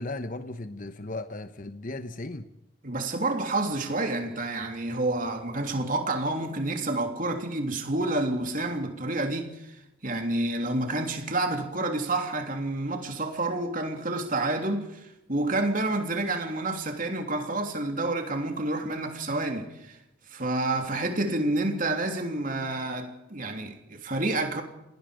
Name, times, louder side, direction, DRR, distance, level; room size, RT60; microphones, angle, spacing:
voice 1, 0.0-2.5, left 2 dB, 40° left, 1.0 m, -36 dB
voice 2, 2.8-20.0 20.3-24.6, right 2 dB, 40° right, 3.2 m, -29 dB
28.0 x 19.0 x 5.2 m
head